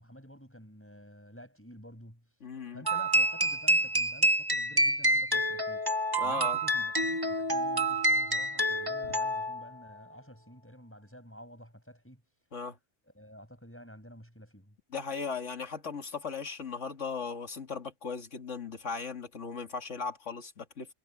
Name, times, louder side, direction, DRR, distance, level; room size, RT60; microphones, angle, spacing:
voice 1, 0.0-2.3 2.7-5.8 6.2-12.2 13.0-14.8, equal, 10° left, 7.4 m, -51 dB
voice 2, 2.4-2.8 6.2-6.6 9.1-9.2 12.5-12.8 14.9-20.9, left 5 dB, 80° left, 2.4 m, -37 dB
sound 1, 2.8-9.7, right 1 dB, 20° right, 2.0 m, -28 dB
omnidirectional pair, 1.2 m